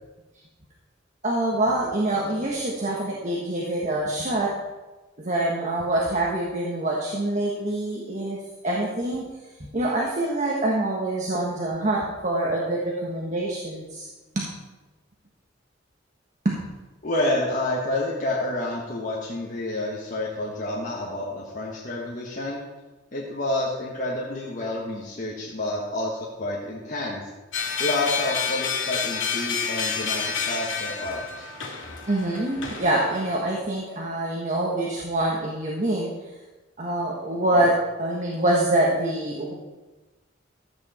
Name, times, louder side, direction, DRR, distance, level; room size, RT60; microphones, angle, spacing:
voice 1, 1.2-4.5 5.2-8.4 8.6-9.3 9.6-14.1 14.3-14.4 16.4-16.5 32.1-36.1 36.8-39.5, right 1 dB, 40° right, -3 dB, 1.4 m, -25 dB
voice 2, 17.0-22.6 23.1-27.3 27.8-31.5, left 1 dB, 45° left, -4 dB, 1.5 m, -29 dB
sound 1, 27.5-33.4, left 6 dB, 90° left, 2.0 m, -29 dB
13.0 x 8.7 x 4.3 m, 1.2 s
head